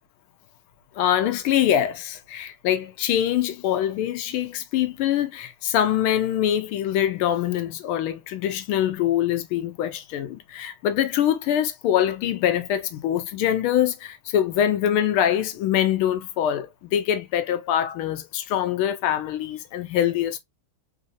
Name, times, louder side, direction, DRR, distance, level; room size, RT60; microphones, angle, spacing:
voice 1, 1.0-20.4, left 10 dB, 80° left, 1.5 m, -24 dB
3.7 x 2.7 x 2.5 m
omnidirectional pair, 2.4 m